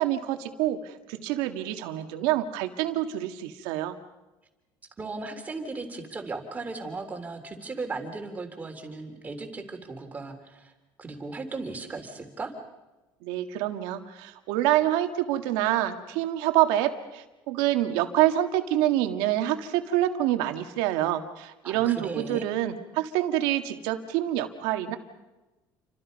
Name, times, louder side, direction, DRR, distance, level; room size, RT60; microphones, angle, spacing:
voice 1, 0.0-4.0 13.2-25.0, right 13 dB, 85° right, 6 dB, 2.0 m, -26 dB
voice 2, 5.0-10.7 11.0-12.5 21.6-22.4, right 3 dB, 20° right, 4 dB, 3.7 m, -36 dB
29.0 x 25.0 x 5.4 m, 1.1 s
cardioid pair, 135°, 8 cm